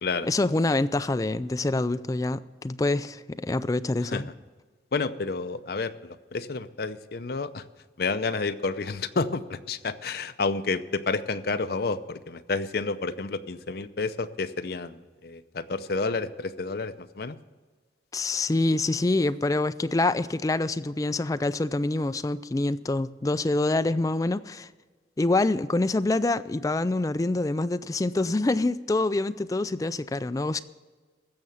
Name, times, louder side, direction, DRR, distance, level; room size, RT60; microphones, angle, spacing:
voice 1, 0.3-4.3 18.1-24.7 25.2-30.6, left 2 dB, 20° left, 0.3 m, -26 dB
voice 2, 4.9-7.6 8.0-17.4, left 4 dB, 55° left, 0.6 m, -30 dB
15.5 x 6.8 x 7.2 m
head